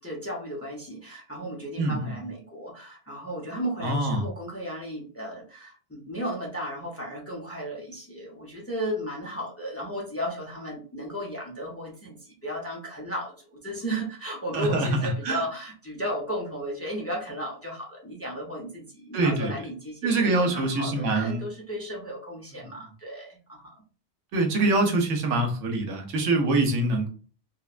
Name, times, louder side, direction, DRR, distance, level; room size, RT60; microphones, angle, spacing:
voice 1, 0.0-23.8, equal, 15° left, -2 dB, 0.6 m, -35 dB
voice 2, 1.8-2.3 3.8-4.3 14.5-15.4 19.1-19.5 20.0-21.5 22.6-22.9 24.3-27.1, right 2 dB, 85° right, 3 dB, 1.1 m, -25 dB
3.1 x 2.2 x 2.4 m, 0.39 s
omnidirectional pair, 1.2 m